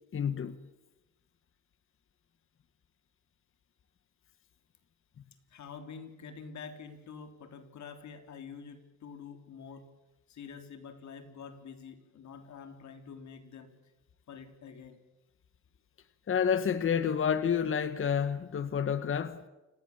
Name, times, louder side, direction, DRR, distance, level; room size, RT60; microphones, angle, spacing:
voice 1, 0.1-0.6 16.3-19.4, left 7 dB, 45° left, 1.3 m, -29 dB
voice 2, 5.5-9.9 10.3-13.7 14.3-15.0, left 6 dB, 65° left, 3.6 m, -47 dB
29.0 x 18.0 x 7.3 m
cardioid pair, 90°, 30 cm